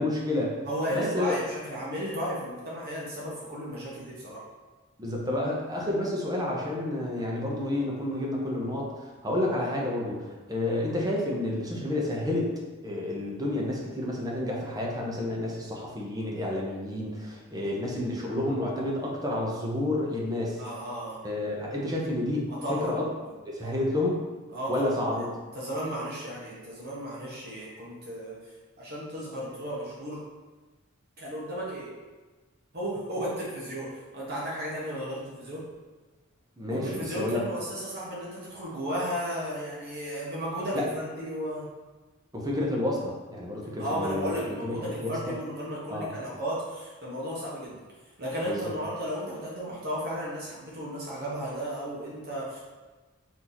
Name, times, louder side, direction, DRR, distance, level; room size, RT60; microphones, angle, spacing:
voice 1, 0.0-0.6 0.9-1.3 5.0-12.5 12.8-20.6 21.2-23.1 23.4-24.2 24.7-25.3 36.6-37.4 40.7-40.8 42.3-45.2 45.9-46.1 48.5-48.7, left 1 dB, 20° right, -2 dB, 0.8 m, -30 dB
voice 2, 0.7-4.4 20.6-21.2 22.5-22.9 23.2-23.3 23.6-23.8 24.5-25.3 25.5-28.4 28.8-30.2 31.2-31.9 32.7-35.6 36.7-41.7 43.8-47.8 48.2-52.6, equal, 50° right, -6 dB, 1.1 m, -34 dB
4.5 x 2.7 x 4.0 m, 1.3 s
head